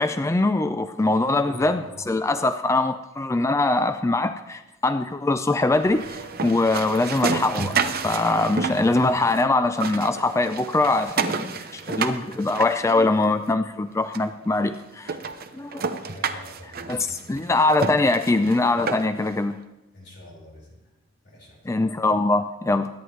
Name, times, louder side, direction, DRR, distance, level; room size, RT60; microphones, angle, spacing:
voice 1, 0.0-7.8 8.0-15.2 15.5-15.8 16.6-19.6 21.7-22.9, left 2 dB, 15° left, 10 dB, 0.3 m, -22 dB
voice 2, 1.2-1.9 8.5-8.9 16.0-17.5 19.9-20.7 21.2-21.6, left 1 dB, 60° left, -3 dB, 5.1 m, -43 dB
sound 1, 5.7-9.4 9.7-13.5 14.1-14.2 14.7-14.8 15.1-19.3, right 5 dB, 50° right, 0.8 m, -30 dB
22.5 x 9.5 x 3.2 m, 0.98 s
head